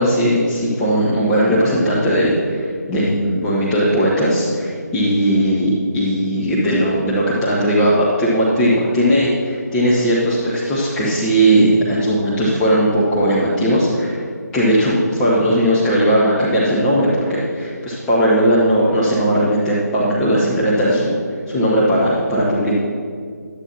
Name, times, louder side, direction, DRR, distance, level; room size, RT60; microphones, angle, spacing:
voice 1, 0.0-14.2 14.5-21.1 21.5-22.8, equal, 5° left, -8 dB, 0.7 m, -17 dB
11.5 x 8.9 x 2.9 m, 2.1 s
figure-of-eight pair, 155°, 10 cm